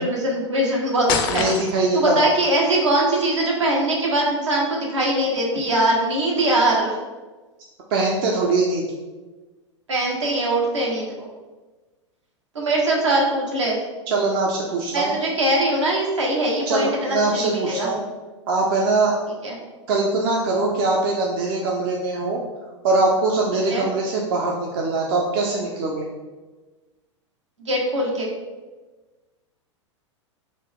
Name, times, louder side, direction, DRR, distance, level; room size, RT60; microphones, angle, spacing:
voice 1, 0.0-1.4 1.9-7.0 9.9-11.3 12.5-13.8 14.9-17.9 19.4-19.5 23.7-23.8 27.6-28.3, right 1 dB, 75° right, -2 dB, 1.0 m, -22 dB
sound 1, 1.1-2.0, left 7 dB, 40° left, 0.4 m, -25 dB
voice 2, 1.3-2.2 7.9-8.9 14.1-15.1 16.7-18.0 18.5-19.2 19.9-22.4 22.8-26.1, right 3 dB, 50° right, -1 dB, 0.5 m, -22 dB
4.1 x 2.3 x 3.5 m, 1.3 s
figure-of-eight pair, 95°, 16 cm